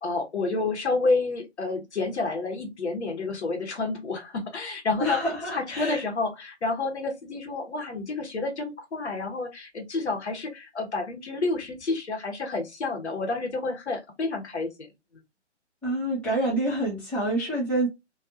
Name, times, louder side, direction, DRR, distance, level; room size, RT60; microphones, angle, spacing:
voice 1, 0.0-5.2 5.5-14.9, left 3 dB, 65° left, 1.1 m, -29 dB
voice 2, 5.0-6.0 15.8-17.9, right 1 dB, 5° left, 1.0 m, -27 dB
2.5 x 2.4 x 2.6 m
figure-of-eight pair, 145°, 36 cm